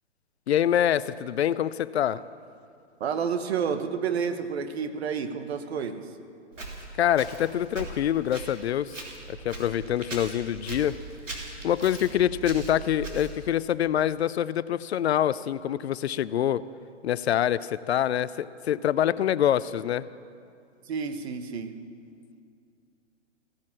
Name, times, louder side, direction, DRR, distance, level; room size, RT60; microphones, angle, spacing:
voice 1, 0.5-2.2 7.0-9.0 9.3-11.0 11.6-16.6 17.0-20.1, left 10 dB, 60° left, 17 dB, 0.5 m, -25 dB
voice 2, 3.0-6.2 20.8-21.8, right 6 dB, 60° right, 9 dB, 1.3 m, -30 dB
Walk footsteps, 6.5-13.5, right 3 dB, 90° right, 3.3 m, -40 dB
16.0 x 11.5 x 7.5 m, 2.3 s
figure-of-eight pair, 125°, 37 cm